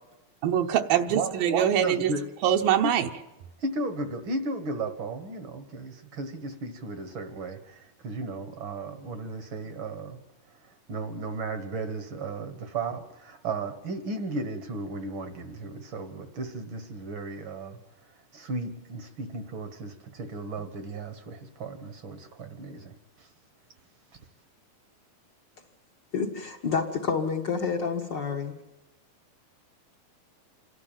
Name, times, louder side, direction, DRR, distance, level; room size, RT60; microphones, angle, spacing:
voice 1, 0.4-2.1 2.4-3.1, right 9 dB, 80° right, 4 dB, 2.7 m, -23 dB
voice 2, 1.1-2.3 3.6-10.2 10.5-23.3, right 3 dB, 60° right, 10 dB, 1.3 m, -35 dB
voice 3, 26.1-28.5, left 5 dB, 65° left, 2 dB, 1.1 m, -29 dB
27.5 x 12.0 x 9.0 m, 0.97 s
omnidirectional pair, 4.0 m